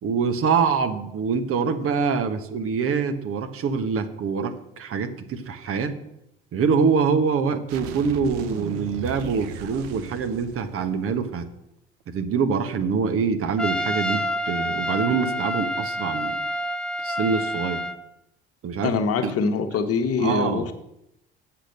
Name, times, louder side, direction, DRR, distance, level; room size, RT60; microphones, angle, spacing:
voice 1, 0.0-6.0 6.5-11.4 12.1-16.4 17.0-17.8 18.6-19.3 20.2-20.7, right 5 dB, 45° right, 8 dB, 1.2 m, -25 dB
sound 1, 7.7-11.4, right 7 dB, 65° right, 1.0 m, -37 dB
Trumpet, 13.6-18.0, equal, 5° left, 0.8 m, -28 dB
voice 2, 18.8-20.7, left 5 dB, 50° left, 8 dB, 1.2 m, -24 dB
8.1 x 6.6 x 6.5 m, 0.82 s
hypercardioid pair, 55°, 30 cm